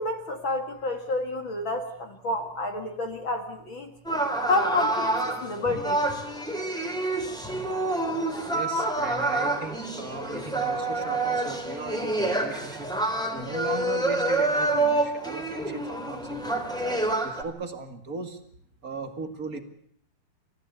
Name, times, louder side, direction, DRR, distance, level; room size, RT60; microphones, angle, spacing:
voice 1, 0.0-3.9 4.5-6.0, left 2 dB, 40° left, 6 dB, 2.0 m, -29 dB
sound 1, 4.0-17.4, right 2 dB, ahead, 3.0 m, -27 dB
voice 2, 8.5-16.8 17.2-18.4 18.8-19.6, right 4 dB, 35° right, 7 dB, 1.4 m, -37 dB
30.0 x 15.5 x 8.1 m, 0.65 s
omnidirectional pair, 4.6 m